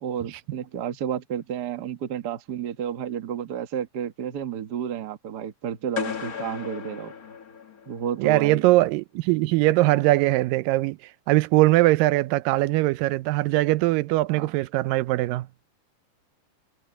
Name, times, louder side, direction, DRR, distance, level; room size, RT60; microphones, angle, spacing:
voice 1, 0.0-7.1 7.9-8.7 14.3-14.5, right 9 dB, 50° right, 1.2 m, -31 dB
sound 1, 6.0-8.1, left 7 dB, 35° left, 1.6 m, -34 dB
voice 2, 8.2-11.0 11.3-15.5, right 18 dB, 85° right, 2.3 m, -21 dB
omnidirectional pair, 3.9 m